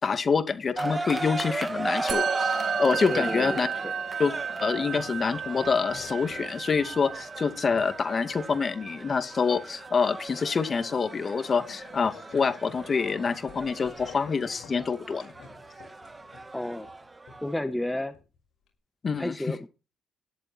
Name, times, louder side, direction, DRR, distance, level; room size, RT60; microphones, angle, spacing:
voice 1, 0.0-3.7 4.2-4.3 4.6-15.3 19.0-19.4, left 5 dB, 40° left, 9 dB, 2.2 m, -26 dB
sound 1, 0.8-17.6, right 2 dB, 20° right, 1.5 m, -37 dB
sound 2, 1.1-18.4 18.7-18.8, left 6 dB, 80° left, 5.7 m, -51 dB
Musical instrument, 2.1-11.6, right 7 dB, 60° right, 2.0 m, -35 dB
voice 2, 3.1-3.9 16.5-16.9 17.4-18.1 19.2-19.7, left 1 dB, 10° left, 10 dB, 1.3 m, -32 dB
13.5 x 11.5 x 4.4 m, 0.31 s
cardioid pair, 90°, 0 cm